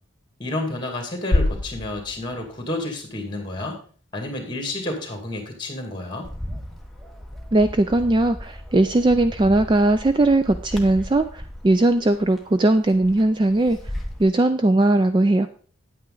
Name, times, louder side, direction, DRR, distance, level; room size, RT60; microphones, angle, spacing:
voice 1, 0.4-3.8 4.1-6.3, left 2 dB, 20° left, 4 dB, 2.2 m, -30 dB
sound 1, 1.3-3.4, left 2 dB, 55° left, 0.9 m, -26 dB
Bird, 6.2-14.2, left 1 dB, ahead, 1.1 m, -37 dB
voice 2, 7.5-13.9 14.2-15.5, right 2 dB, 20° right, 10 dB, 0.3 m, -19 dB
9.3 x 8.8 x 3.8 m, 0.43 s
head